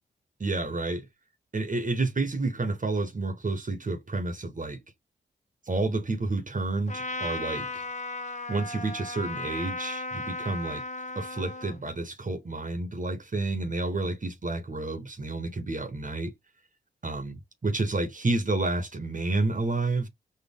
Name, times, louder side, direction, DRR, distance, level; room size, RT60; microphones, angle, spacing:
voice 1, 0.4-1.1 1.5-4.8 5.7-7.8 8.5-10.8 11.1-16.3 17.0-17.4 17.6-20.1, right 2 dB, 40° right, 1.3 m, -30 dB
Trumpet, 6.9-11.8, left 2 dB, 35° left, 1.1 m, -35 dB
4.5 x 2.5 x 3.5 m
supercardioid pair, 45°, 20 cm